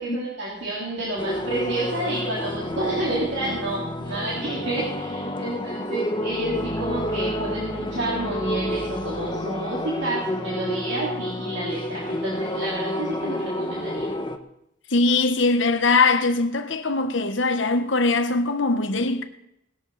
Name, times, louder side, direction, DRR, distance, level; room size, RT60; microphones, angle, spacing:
voice 1, 0.0-14.1, right 2 dB, 60° right, 3.7 m, -29 dB
sound 1, 1.2-14.4, left 1 dB, 25° left, 1.0 m, -30 dB
voice 2, 14.9-19.2, left 3 dB, 70° left, 1.4 m, -21 dB
19.0 x 13.5 x 4.2 m
head